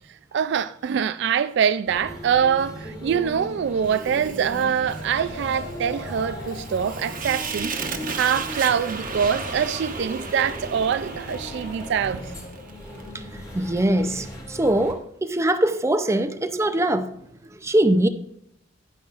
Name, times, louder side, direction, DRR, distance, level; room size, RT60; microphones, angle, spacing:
voice 1, 0.3-7.7 8.1-12.2, right 7 dB, 65° right, 0.3 m, -24 dB
sound 1, 1.9-14.9, equal, 20° left, 2.4 m, -38 dB
Fire, 3.9-13.1, right 5 dB, 45° right, 1.1 m, -35 dB
Wind, 4.0-12.7, left 2 dB, 55° left, 1.0 m, -42 dB
voice 2, 13.5-17.1 17.5-18.1, right 1 dB, 15° right, 0.5 m, -22 dB
11.0 x 9.3 x 2.5 m
head